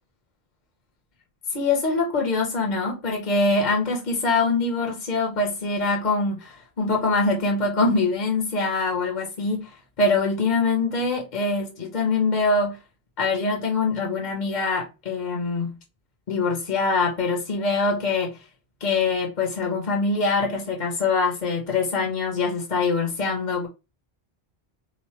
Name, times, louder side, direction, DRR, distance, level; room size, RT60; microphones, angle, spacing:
voice 1, 1.5-12.8 13.2-15.7 16.3-18.4 18.8-23.7, left 3 dB, 50° left, 0.9 m, -24 dB
3.1 x 2.1 x 4.2 m
omnidirectional pair, 1.1 m